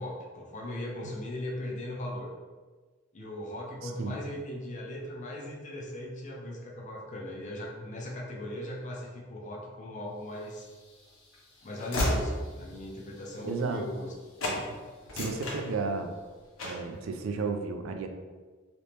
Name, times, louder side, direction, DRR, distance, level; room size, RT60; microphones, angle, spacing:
voice 1, 0.0-2.3 3.1-10.7 11.6-14.1, left 1 dB, 40° left, -2 dB, 0.6 m, -38 dB
voice 2, 3.8-4.2 13.4-13.8 14.5-14.8 15.1-16.2 16.6-18.1, right 4 dB, 85° right, 5 dB, 0.4 m, -33 dB
Train / Slam, 10.5-14.1 14.4-14.6 15.0-16.2 16.6-16.9, left 1 dB, 80° left, 0.9 m, -34 dB
2.9 x 2.9 x 3.3 m, 1.4 s
head